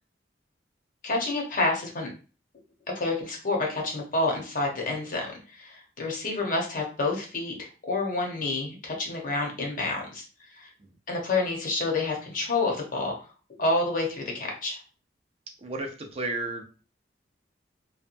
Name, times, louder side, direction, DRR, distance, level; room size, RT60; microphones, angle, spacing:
voice 1, 1.0-2.1 2.9-5.2 5.5-10.2 10.5-10.7 11.1-13.1 13.6-14.8, left 2 dB, 50° left, 0 dB, 0.8 m, -28 dB
voice 2, 15.6-16.6, right 2 dB, 35° right, 4 dB, 0.4 m, -32 dB
2.8 x 2.2 x 2.5 m, 0.36 s
head